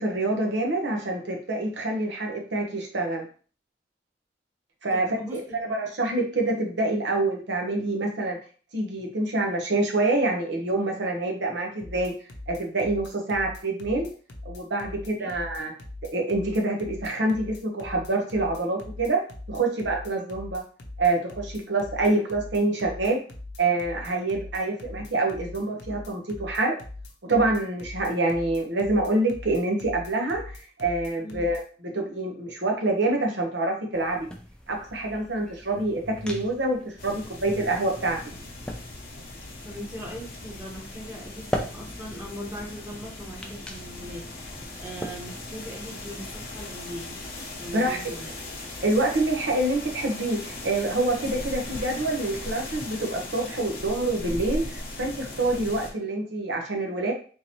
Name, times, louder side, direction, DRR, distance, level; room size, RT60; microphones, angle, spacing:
voice 1, 0.0-3.3 4.8-8.4 8.7-12.1 12.5-14.1 14.4-15.7 16.1-19.2 19.5-20.6 21.0-23.2 23.6-26.7 27.3-31.6 31.9-34.3 34.7-38.2 47.7-48.0 48.8-57.1, right 2 dB, 80° right, 2 dB, 0.9 m, -26 dB
voice 2, 4.9-5.6 14.9-15.3 31.2-31.4 39.6-44.3 44.8-47.2 47.6-48.4, equal, 10° right, -2 dB, 0.9 m, -40 dB
sound 1, 11.8-31.6, left 2 dB, 80° left, 0.7 m, -41 dB
sound 2, 33.9-46.6, equal, 5° left, 0.4 m, -40 dB
sound 3, 37.0-55.9, left 2 dB, 50° left, 0.8 m, -38 dB
3.7 x 2.8 x 2.9 m, 0.40 s
head